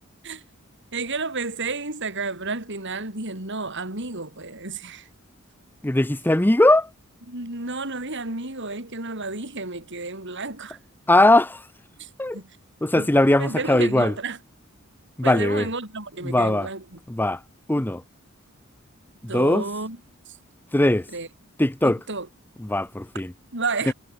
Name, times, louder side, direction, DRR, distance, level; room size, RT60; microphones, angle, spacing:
voice 1, 0.9-5.1 7.3-10.8 12.0-12.5 13.0-13.1 13.4-14.4 15.2-17.0 19.3-20.0 20.3-20.4 21.1-21.3 21.8-22.3 23.5-23.9, right 3 dB, 60° right, 6.5 m, -31 dB
voice 2, 5.8-6.9 11.1-11.7 12.2-12.4 12.8-14.1 15.2-15.7 16.2-16.7 17.1-17.4 17.7-18.0 19.2-19.6 20.7-21.1 21.6-22.0 22.6-23.3 23.9-24.0, left 1 dB, 10° left, 0.6 m, -20 dB
head